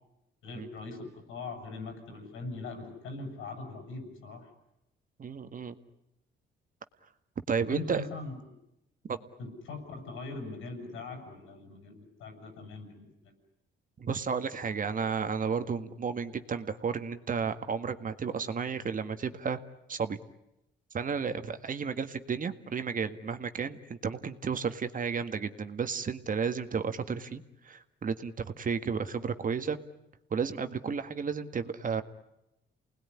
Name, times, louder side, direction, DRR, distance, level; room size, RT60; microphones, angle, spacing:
voice 1, 0.4-4.5 7.6-8.5 9.4-13.4, left 3 dB, 90° left, 6 dB, 7.8 m, -41 dB
voice 2, 5.2-5.8 7.5-8.0 9.1-9.2 14.0-19.6 19.9-20.2 20.9-29.8 30.3-32.0, right 6 dB, 40° right, 9 dB, 1.8 m, -32 dB
29.0 x 20.0 x 10.0 m, 0.88 s
cardioid pair, 90°, 20 cm